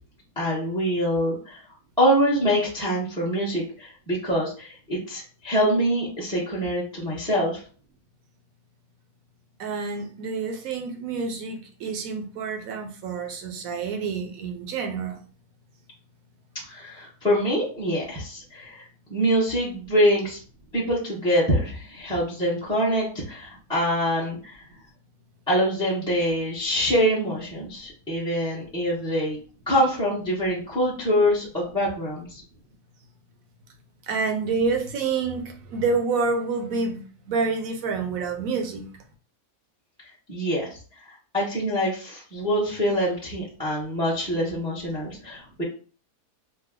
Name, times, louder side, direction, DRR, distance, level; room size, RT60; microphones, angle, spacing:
voice 1, 0.4-1.6 2.0-7.6 16.6-20.4 20.7-24.6 25.5-29.4 29.7-32.4 40.3-45.6, equal, 5° left, -8 dB, 0.7 m, -25 dB
voice 2, 9.6-15.2 22.0-22.1 34.0-38.8, right 4 dB, 70° right, 4 dB, 1.1 m, -28 dB
3.1 x 2.1 x 3.6 m, 0.40 s
omnidirectional pair, 1.6 m